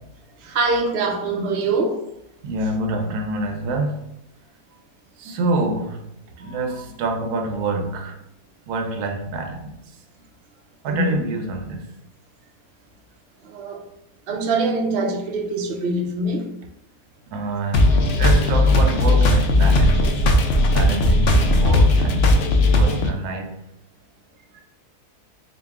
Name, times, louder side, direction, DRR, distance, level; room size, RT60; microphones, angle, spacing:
voice 1, 0.4-2.1 6.4-6.6 10.9-11.2 13.4-13.8 14.3-16.5, right 2 dB, 60° right, 0.6 m, -24 dB
voice 2, 2.4-4.1 5.2-6.1 6.4-8.2 8.7-9.7 10.8-11.9 17.3-20.3 20.7-22.3 22.8-23.6, right 2 dB, 80° right, 1.1 m, -26 dB
sound 1, 17.7-23.1, left 1 dB, 70° left, 0.6 m, -17 dB
4.0 x 2.4 x 3.4 m
omnidirectional pair, 1.6 m